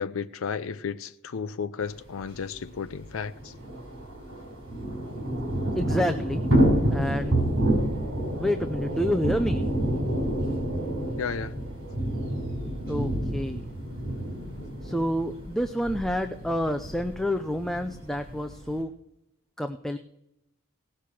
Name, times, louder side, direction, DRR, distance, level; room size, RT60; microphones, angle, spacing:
voice 1, 0.0-3.5 11.2-11.5, left 6 dB, 80° left, 0.5 m, -33 dB
Thunder / Rain, 2.2-2.3 2.5-2.6 2.9-18.8, right 1 dB, 65° right, 5.6 m, -29 dB
voice 2, 5.8-7.4 8.3-9.6 12.9-13.6 14.8-18.9 19.6-20.0, equal, ahead, 0.5 m, -29 dB
18.0 x 6.6 x 5.9 m
head